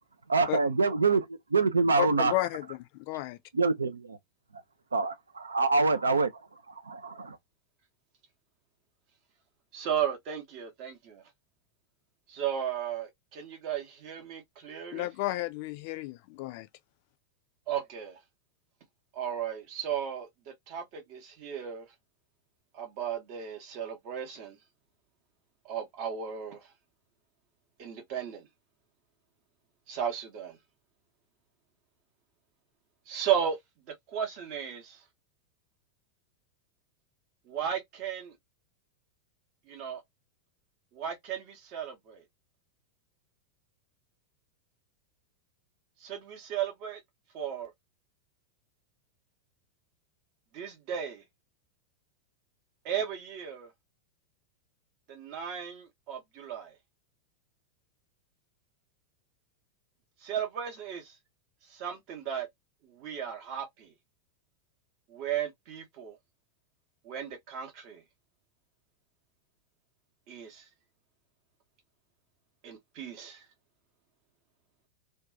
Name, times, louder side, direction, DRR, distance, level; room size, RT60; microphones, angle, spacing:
voice 1, 0.3-1.3 1.5-2.3 3.5-4.2 4.9-6.3 6.9-7.4, right 4 dB, 75° right, 0.4 m, -25 dB
voice 2, 2.0-3.4 14.9-16.7, left 17 dB, 45° left, 0.4 m, -32 dB
voice 3, 9.7-11.2 12.3-15.1 17.7-18.2 19.1-21.9 22.7-24.6 25.6-26.7 27.8-28.4 29.9-30.6 33.1-33.6 34.1-35.0 37.5-38.3 39.7-40.0 40.9-42.2 46.0-47.0 47.3-47.7 50.5-51.2 52.8-53.7 55.1-56.7 60.2-61.2 61.6-62.5 62.9-63.9 65.1-66.2 67.0-68.0 70.3-70.6 72.6-73.4, right 9 dB, 45° right, 0.7 m, -35 dB
2.6 x 2.3 x 2.5 m
figure-of-eight pair, 90°, 0 cm